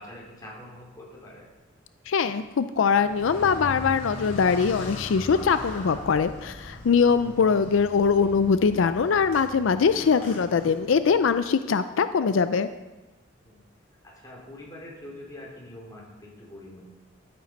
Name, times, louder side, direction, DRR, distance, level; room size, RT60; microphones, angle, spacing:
voice 1, 0.0-1.5 7.2-7.6 13.4-13.6 14.2-16.8, left 1 dB, 20° left, -5 dB, 3.7 m, -44 dB
voice 2, 2.1-12.7, left 5 dB, 80° left, 11 dB, 0.4 m, -22 dB
Car, 3.0-11.3, left 1 dB, 45° left, 3.0 m, -40 dB
13.0 x 7.8 x 5.2 m, 1.2 s
head